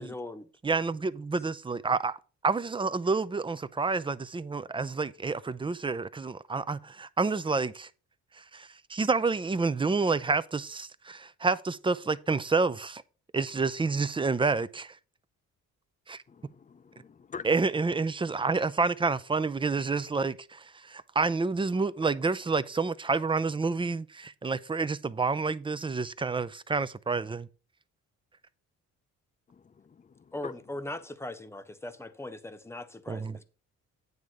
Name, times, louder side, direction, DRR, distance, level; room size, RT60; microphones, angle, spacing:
voice 1, 0.0-0.5 30.3-33.4, left 2 dB, 10° left, 1.0 m, -40 dB
voice 2, 0.6-2.2 2.4-7.9 8.4-13.0 13.3-15.0 16.1-16.2 17.4-27.5 33.1-33.4, right 4 dB, 15° right, 0.5 m, -29 dB
voice 3, 16.3-17.5 29.5-30.5, left 5 dB, 25° left, 0.6 m, -45 dB
9.4 x 3.6 x 6.4 m
cardioid pair, 90°, 30 cm